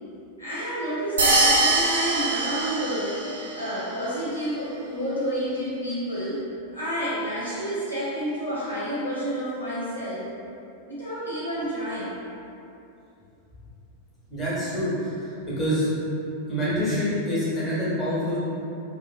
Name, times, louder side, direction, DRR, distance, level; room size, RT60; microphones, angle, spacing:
voice 1, 0.4-3.2 3.5-10.3 10.8-12.2, equal, 85° left, -11 dB, 0.7 m, -29 dB
sound 1, 1.2-3.5, right 2 dB, 70° right, 0.4 m, -22 dB
voice 2, 14.3-15.9 16.5-18.4, equal, 20° left, -11 dB, 1.2 m, -26 dB
2.8 x 2.4 x 2.5 m, 2.7 s
figure-of-eight pair, 90°, 0 cm